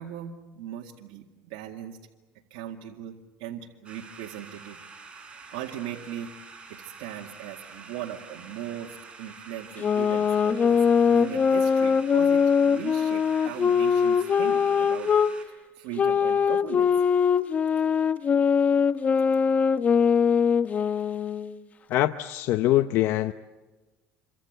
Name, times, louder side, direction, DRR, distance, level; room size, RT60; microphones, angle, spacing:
voice 1, 0.0-2.0 2.5-4.8 5.2-6.3 6.7-15.1 15.5-17.0, right 11 dB, 80° right, 2.1 m, -39 dB
sound 1, 3.8-15.4, right 4 dB, 25° right, 6.5 m, -47 dB
sound 2, 9.8-15.3 16.0-21.5, left 6 dB, 35° left, 0.9 m, -22 dB
voice 2, 21.9-23.3, left 15 dB, 65° left, 0.8 m, -23 dB
27.5 x 24.5 x 8.0 m
supercardioid pair, 110°, 5 cm